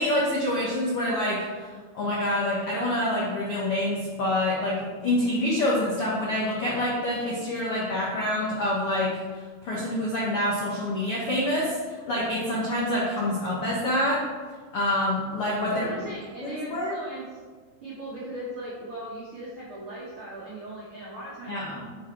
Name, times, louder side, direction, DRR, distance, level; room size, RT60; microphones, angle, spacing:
voice 1, 0.0-1.7 1.9-9.1 9.6-14.2 14.7-15.9 16.4-17.0 21.5-21.8, left 1 dB, 75° left, -5 dB, 1.3 m, -26 dB
voice 2, 15.7-17.2 17.8-21.6, right 1 dB, 65° right, -8 dB, 1.3 m, -38 dB
8.5 x 6.6 x 3.3 m, 1.5 s
omnidirectional pair, 4.6 m